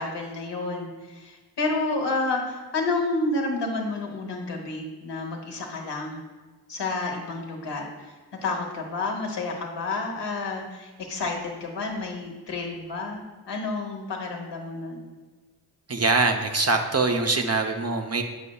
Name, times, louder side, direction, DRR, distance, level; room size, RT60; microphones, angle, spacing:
voice 1, 0.0-6.2 6.7-8.1 8.4-15.0, left 3 dB, 75° left, 1 dB, 1.1 m, -30 dB
voice 2, 15.9-18.2, right 3 dB, 35° right, 4 dB, 0.7 m, -23 dB
6.8 x 6.0 x 2.3 m, 1.3 s
cardioid pair, 45°, 42 cm